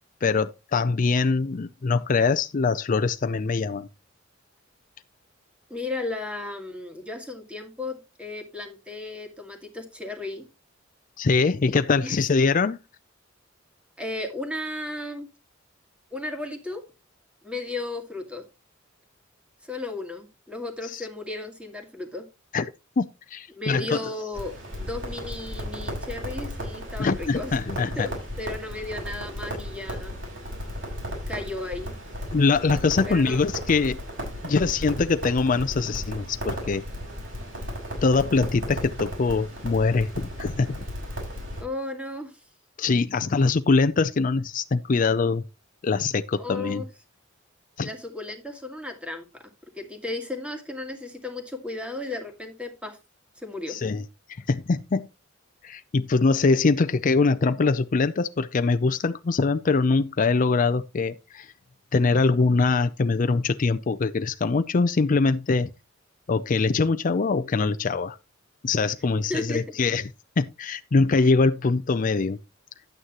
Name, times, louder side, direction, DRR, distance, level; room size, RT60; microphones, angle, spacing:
voice 1, 0.2-3.9 11.2-12.8 20.8-21.1 22.5-22.7 23.0-24.0 27.0-28.1 32.3-34.0 34.4-36.9 38.0-40.8 42.8-45.4 45.8-46.8 47.8-47.9 53.7-54.0 54.3-55.1 55.6-61.5 61.9-65.7 66.3-68.2 68.6-70.0 70.4-72.4, left 4 dB, 40° left, 0.5 m, -23 dB
voice 2, 5.7-10.4 12.0-12.2 14.0-15.3 16.1-16.8 17.4-18.4 19.6-22.3 23.5-27.6 28.0-28.1 28.4-30.2 31.3-32.0 33.1-33.4 41.6-42.4 46.4-46.9 47.8-53.0 53.4-53.8 69.1-69.6, left 2 dB, 5° right, 2.1 m, -34 dB
Crackle, 24.3-41.6, equal, 65° right, 6.5 m, -35 dB
11.0 x 9.0 x 3.0 m
head